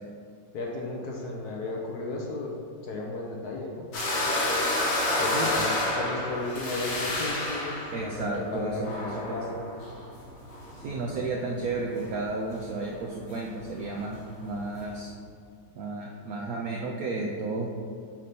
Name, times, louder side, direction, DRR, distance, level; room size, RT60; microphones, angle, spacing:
voice 1, 0.5-2.5 2.8-3.9 5.1-9.6 10.8-11.2, left 2 dB, 65° left, -1 dB, 1.1 m, -34 dB
sound 1, 3.9-11.0 11.3-12.3 12.5-12.6 12.8-15.1, left 1 dB, 80° left, 2.0 m, -30 dB
voice 2, 7.9-8.9 9.3-9.4 10.8-14.2 14.4-15.1 15.8-17.7, right 3 dB, 75° right, -1 dB, 0.8 m, -32 dB
7.5 x 2.7 x 5.2 m, 2.2 s
omnidirectional pair, 2.1 m